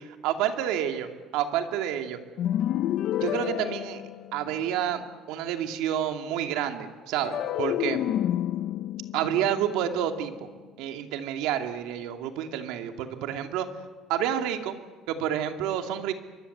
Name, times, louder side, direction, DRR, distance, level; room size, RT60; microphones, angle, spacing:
voice 1, 0.2-2.2 3.2-4.0 4.3-5.0 5.3-8.0 9.1-10.5 10.8-13.7 14.1-14.8 15.1-16.1, right 10 dB, 90° right, 5 dB, 2.6 m, -29 dB
sound 1, 2.4-4.8 7.2-10.5, left 12 dB, 55° left, 0.9 m, -30 dB
28.5 x 24.0 x 8.1 m, 1.4 s
cardioid pair, 165°, 0 cm